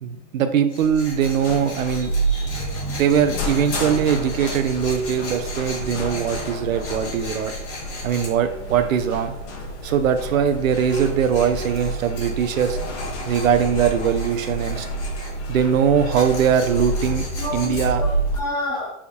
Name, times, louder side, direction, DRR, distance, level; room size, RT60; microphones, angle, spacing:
voice 1, 0.0-2.1 3.0-7.5 8.0-9.4 9.8-12.8 13.3-14.9 15.5-17.2 17.5-18.1, right 8 dB, 85° right, 9 dB, 0.6 m, -21 dB
Tools, 0.7-8.3 10.6-15.3 16.1-17.9, left 2 dB, 30° left, 1.4 m, -38 dB
sound 1, 0.8-18.4, right 2 dB, 60° left, 0.9 m, -29 dB
voice 2, 2.3-3.3 17.4-18.1 18.4-18.9, left 1 dB, 10° left, -5 dB, 0.9 m, -30 dB
3.5 x 2.2 x 4.3 m, 0.80 s
hypercardioid pair, 150°, 39 cm